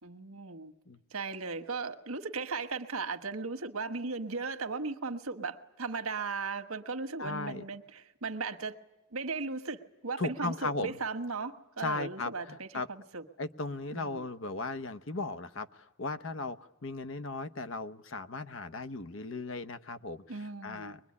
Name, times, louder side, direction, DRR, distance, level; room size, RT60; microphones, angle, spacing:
voice 1, 0.0-0.7 1.1-8.8 9.1-13.2 13.9-14.2 20.3-21.0, right 4 dB, 90° right, 1.4 m, -37 dB
voice 2, 7.2-7.6 10.2-11.0 11.8-12.9 13.4-21.0, left 3 dB, 65° left, 0.9 m, -37 dB
23.5 x 21.5 x 9.7 m
head